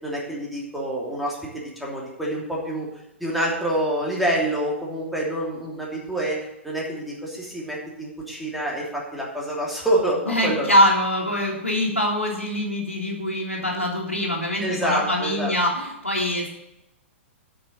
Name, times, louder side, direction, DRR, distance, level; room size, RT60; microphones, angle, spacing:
voice 1, 0.0-1.4 1.8-2.9 3.2-6.4 6.6-10.8 14.6-15.5, right 1 dB, ahead, -4 dB, 3.0 m, -27 dB
voice 2, 10.3-16.5, left 1 dB, 85° left, -5 dB, 2.1 m, -23 dB
8.6 x 6.9 x 7.1 m, 0.88 s
figure-of-eight pair, 110°, 7 cm